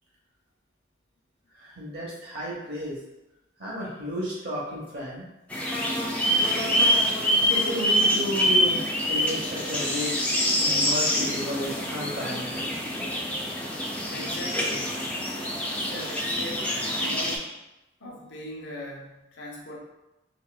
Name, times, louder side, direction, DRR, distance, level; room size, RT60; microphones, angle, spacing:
voice 1, 1.5-3.0 3.6-5.2 7.5-12.7, equal, 55° right, -5 dB, 1.1 m, -33 dB
sound 1, 5.5-17.4, equal, 5° left, 0.3 m, -25 dB
voice 2, 14.1-15.0 15.7-17.5 18.0-19.8, left 1 dB, 80° left, -2 dB, 0.8 m, -40 dB
4.0 x 2.4 x 2.3 m, 0.96 s
head